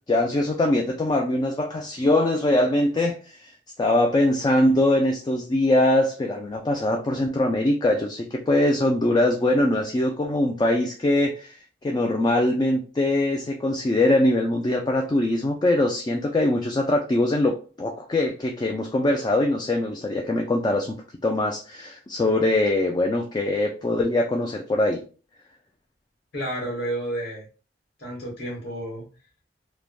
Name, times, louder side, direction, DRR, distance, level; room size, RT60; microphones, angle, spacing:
voice 1, 0.1-3.5 3.8-20.9 21.2-25.0, left 1 dB, 25° left, 2 dB, 0.3 m, -22 dB
voice 2, 26.3-27.4 28.0-29.0, right 1 dB, 60° left, -2 dB, 1.4 m, -31 dB
3.2 x 2.1 x 2.3 m, 0.36 s
head